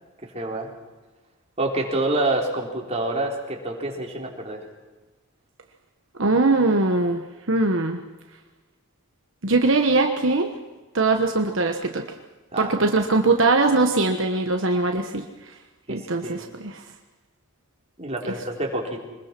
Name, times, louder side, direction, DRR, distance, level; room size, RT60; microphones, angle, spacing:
voice 1, 0.2-0.7 1.6-4.6 12.5-12.8 15.9-16.4 18.0-19.0, right 2 dB, 30° right, -1 dB, 3.8 m, -27 dB
voice 2, 6.2-8.0 9.4-10.5 10.9-12.1 12.6-15.6 15.9-16.9 18.2-18.3, right 3 dB, 65° right, 4 dB, 1.3 m, -21 dB
25.0 x 21.0 x 6.0 m, 1.2 s
head